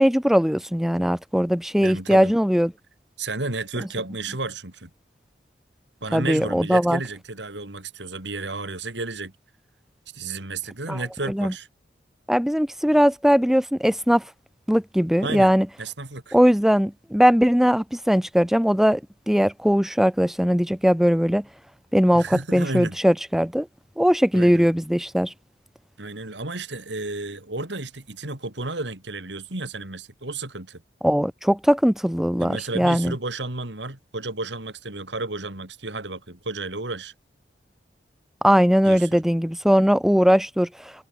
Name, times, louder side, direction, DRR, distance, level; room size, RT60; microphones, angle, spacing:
voice 1, 0.0-2.7 6.1-7.0 10.9-11.0 11.4-11.5 12.3-14.2 14.7-15.7 16.3-19.0 19.3-21.4 21.9-22.2 22.5-23.7 24.0-25.3 31.0-33.1 38.4-40.7, equal, ahead, 0.7 m, -19 dB
voice 2, 1.8-2.3 3.2-4.9 6.0-9.3 10.1-11.7 15.2-16.4 22.1-23.0 24.3-24.7 26.0-30.8 32.4-37.1 38.9-39.2, right 2 dB, 80° right, 3.3 m, -32 dB
head